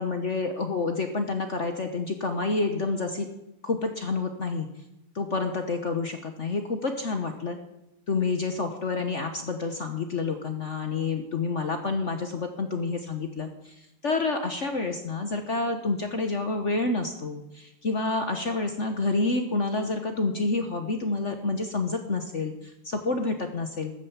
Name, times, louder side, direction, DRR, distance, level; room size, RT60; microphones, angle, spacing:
voice 1, 0.0-3.3 3.6-4.7 5.1-7.6 8.1-13.7 14.0-23.9, left 3 dB, 45° left, 6 dB, 1.1 m, -28 dB
14.0 x 9.1 x 7.2 m, 0.89 s
omnidirectional pair, 2.4 m